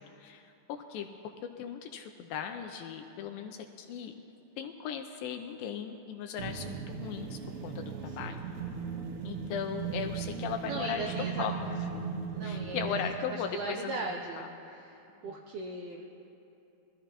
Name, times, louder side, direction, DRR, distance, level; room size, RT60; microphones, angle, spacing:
voice 1, 0.0-4.2 4.6-8.4 9.2-11.7 12.4-14.1 14.4-14.5 15.2-15.3, left 7 dB, 80° left, 5 dB, 2.1 m, -38 dB
sound 1, 6.4-13.2, right 5 dB, 70° right, 2.1 m, -37 dB
voice 2, 8.1-8.4 10.6-11.5 12.3-12.8 13.3-15.0 15.2-16.2, right 3 dB, 85° right, 0 dB, 1.7 m, -39 dB
21.5 x 14.5 x 2.9 m, 2.8 s
omnidirectional pair, 4.5 m